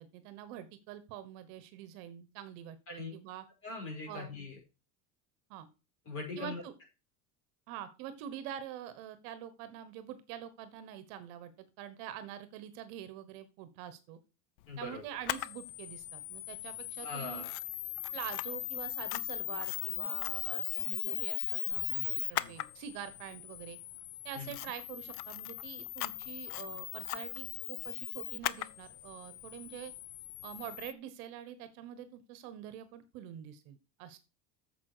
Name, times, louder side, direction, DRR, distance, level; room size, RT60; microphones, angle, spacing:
voice 1, 0.0-3.4 4.1-4.3 5.5-5.7 6.4-6.7 7.7-14.2 14.8-17.4 18.1-23.8 24.2-29.9 30.4-34.2, right 10 dB, 55° right, 12 dB, 1.2 m, -46 dB
voice 2, 3.6-4.6 6.1-6.6 14.7-15.0 17.0-17.5 22.3-22.5 24.3-24.6, left 3 dB, 30° left, 0 dB, 5.4 m, -41 dB
Camera, 15.3-30.9, left 16 dB, 70° left, 0.7 m, -38 dB
8.5 x 7.1 x 4.9 m, 0.30 s
cardioid pair, 170°, 44 cm